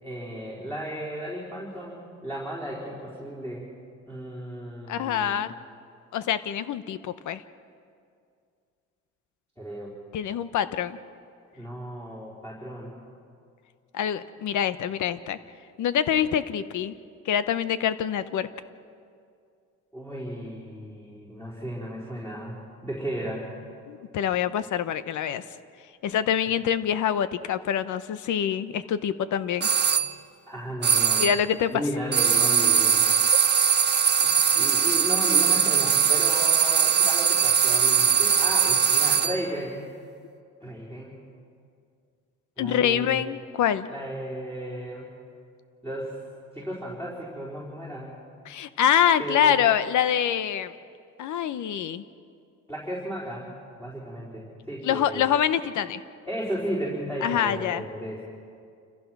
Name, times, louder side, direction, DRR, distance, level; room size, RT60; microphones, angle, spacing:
voice 1, 0.0-3.7 4.1-5.5 9.6-9.9 11.5-12.9 19.9-23.6 30.5-31.2 31.7-33.1 34.2-39.8 40.6-41.2 42.6-43.2 43.9-45.1 45.8-46.2 46.5-48.2 49.2-49.6 52.7-53.5 53.8-55.3 56.3-58.2, equal, 10° left, -6 dB, 4.5 m, -34 dB
voice 2, 4.9-5.5 6.1-7.4 10.1-11.0 13.9-15.4 15.8-16.9 17.2-18.5 23.9-25.4 26.0-29.7 31.2-31.8 42.6-43.9 48.5-50.7 51.2-52.0 54.8-56.0 57.2-57.8, left 9 dB, 75° left, 13 dB, 1.0 m, -25 dB
sound 1, 29.6-30.1 30.8-31.5 32.1-39.5, right 7 dB, 35° right, 0.9 m, -21 dB
28.5 x 15.0 x 6.1 m, 2.3 s
cardioid pair, 90°, 30 cm